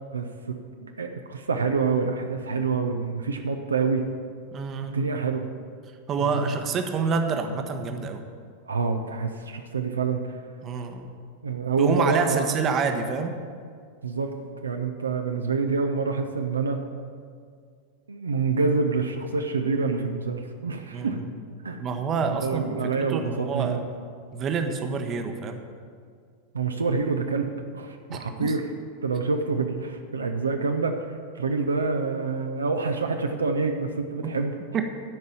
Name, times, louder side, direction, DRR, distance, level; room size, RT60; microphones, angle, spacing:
voice 1, 0.1-4.1 4.9-5.5 6.2-6.6 8.6-10.3 11.4-12.5 14.0-14.3 14.6-16.8 18.1-21.2 21.6-21.8 22.1-23.8 26.5-28.7 29.0-34.6, right 4 dB, 75° right, 5 dB, 0.7 m, -27 dB
voice 2, 4.5-4.9 6.1-8.2 10.6-11.1 11.8-13.4 20.9-21.3 21.8-23.8 24.3-25.6 28.1-28.5 34.2-34.3 34.7-34.8, right 5 dB, 30° right, 6 dB, 0.9 m, -27 dB
12.5 x 5.4 x 7.5 m, 2.1 s
figure-of-eight pair, 90°, 0 cm